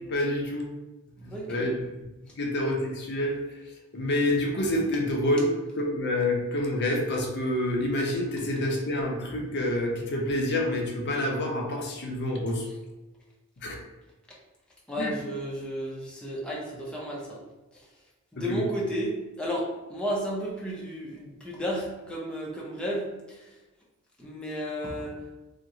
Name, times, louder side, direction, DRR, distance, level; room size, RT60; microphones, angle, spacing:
voice 1, 0.1-0.7 1.2-1.8 2.4-3.4 3.9-12.7 13.6-13.8 15.0-15.2 18.4-18.7, left 1 dB, 50° left, 0 dB, 0.6 m, -27 dB
voice 2, 1.2-1.7 14.9-17.4 17.7-17.8 18.3-23.5 24.2-25.2, equal, 5° left, -5 dB, 0.5 m, -33 dB
2.9 x 2.1 x 3.6 m, 1.1 s
head